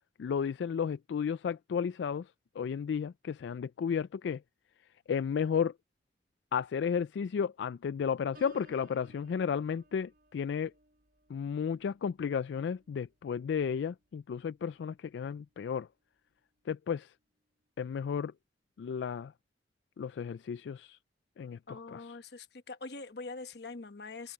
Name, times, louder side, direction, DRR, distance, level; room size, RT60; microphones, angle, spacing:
voice 1, 0.2-2.3 2.6-4.4 5.1-5.7 6.5-10.7 11.3-15.9 16.7-17.1 17.8-18.3 18.8-19.3 20.0-21.0 21.4-22.1, left 7 dB, 85° left, 0.3 m, -33 dB
Piano, 8.3-14.0 14.4-14.8, right 1 dB, 50° right, 6.3 m, -61 dB
voice 2, 21.7-24.3, left 3 dB, 70° left, 1.1 m, -43 dB
head